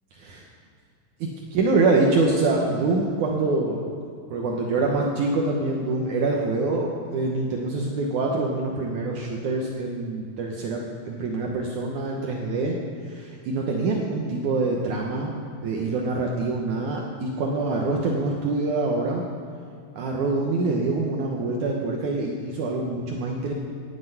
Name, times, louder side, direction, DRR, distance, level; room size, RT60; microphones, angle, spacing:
voice 1, 1.2-3.9 4.3-12.8 13.0-15.3 15.6-19.2 19.9-23.5, right 3 dB, 70° right, 0 dB, 2.2 m, -25 dB
11.5 x 7.9 x 9.2 m, 2.4 s
omnidirectional pair, 4.1 m